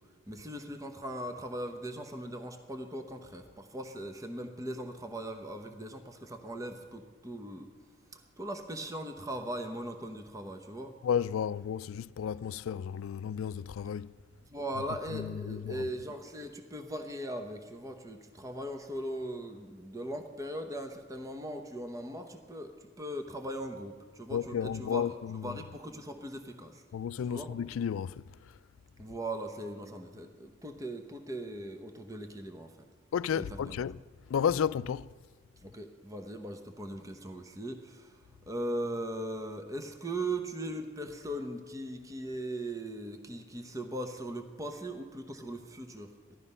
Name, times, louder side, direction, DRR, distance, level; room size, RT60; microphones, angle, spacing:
voice 1, 0.3-7.7 8.1-11.0 14.5-25.1 25.4-26.8 27.3-27.5 29.0-32.9 33.3-33.8 35.6-46.4, right 1 dB, 15° right, 0.8 m, -39 dB
voice 2, 11.0-14.1 15.1-15.9 24.3-25.6 26.9-28.3 33.1-34.0 34.3-35.1, left 8 dB, 80° left, 0.3 m, -32 dB
15.5 x 12.0 x 5.5 m
head